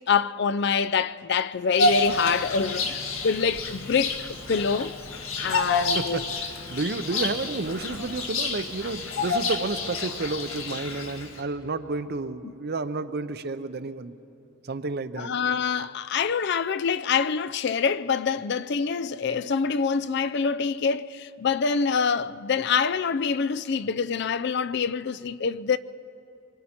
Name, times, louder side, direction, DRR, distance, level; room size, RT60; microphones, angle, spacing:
voice 1, 0.1-4.2 4.5-4.9 5.4-6.2 15.2-25.8, left 6 dB, 55° left, 0.4 m, -25 dB
Bird vocalization bird call bird song, 1.8-11.4, left 2 dB, 75° left, 1.8 m, -29 dB
voice 2, 5.5-14.1 14.6-15.3, right 3 dB, 50° right, 0.6 m, -31 dB
25.5 x 23.5 x 4.4 m
head